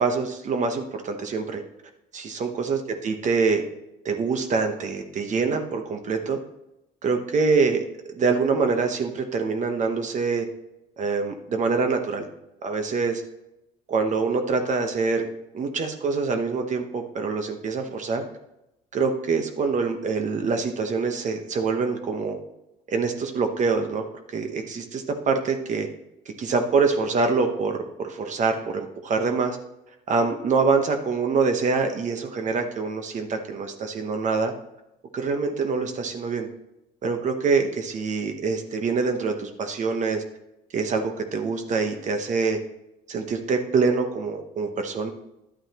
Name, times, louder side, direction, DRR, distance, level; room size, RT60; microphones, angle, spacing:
voice 1, 0.0-1.6 2.1-3.6 4.0-6.4 7.0-7.8 8.1-10.5 11.0-12.3 12.6-13.2 13.9-15.3 15.5-18.2 18.9-22.4 22.9-25.9 26.4-29.6 30.1-34.5 35.1-36.5 37.0-40.2 40.7-42.6 43.1-45.1, right 4 dB, 45° right, 5 dB, 1.0 m, -25 dB
11.0 x 8.7 x 3.0 m, 0.89 s
cardioid pair, 110°, 17 cm